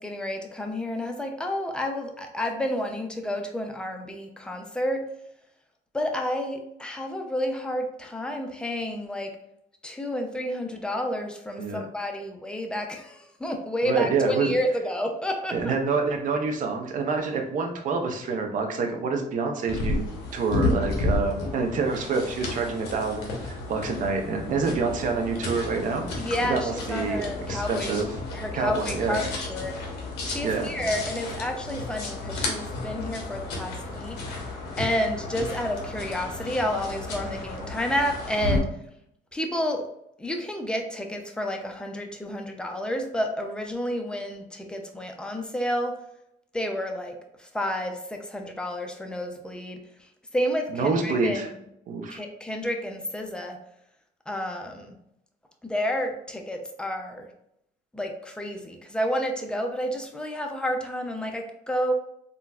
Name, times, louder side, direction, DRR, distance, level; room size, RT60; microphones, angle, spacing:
voice 1, 0.0-5.1 5.9-9.3 9.8-15.7 26.2-27.9 28.3-29.2 29.5-29.8 30.2-34.2 34.8-38.7 39.3-39.9 40.2-46.0 46.5-49.8 50.3-51.4 52.1-53.6 54.3-54.9 55.6-57.3 57.9-61.9, equal, 5° left, 3 dB, 0.4 m, -30 dB
voice 2, 13.8-14.5 15.5-20.1 20.3-26.1 26.4-28.1 28.5-29.3 30.4-30.9 50.7-51.5 51.9-52.2, right 4 dB, 50° right, 3 dB, 0.6 m, -27 dB
sound 1, 19.7-38.6, left 2 dB, 85° left, 0.9 m, -32 dB
3.8 x 2.2 x 2.3 m, 0.76 s
cardioid pair, 110°, 17 cm